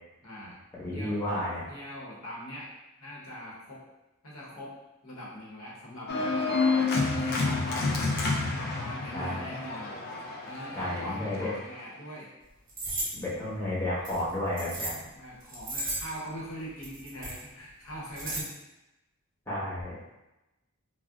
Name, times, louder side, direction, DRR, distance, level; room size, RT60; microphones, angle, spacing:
voice 1, 0.2-0.6 0.9-1.2 1.7-2.7 3.0-3.8 4.2-4.7 5.0-8.0 8.6-10.0 10.4-12.3 13.0-13.2 15.0-18.6, equal, 75° left, -5 dB, 0.8 m, -42 dB
voice 2, 0.8-1.6 9.1-9.4 10.7-11.5 13.2-15.0 19.5-19.9, left 1 dB, 10° left, -9 dB, 0.8 m, -32 dB
Organ, 6.1-11.7, left 3 dB, 45° left, 0.4 m, -29 dB
sound 1, 12.7-13.1 14.0-15.0 15.4-16.2 16.8-17.4 17.9-18.4, right 2 dB, 40° right, 0.8 m, -35 dB
2.4 x 2.0 x 3.6 m, 0.99 s
head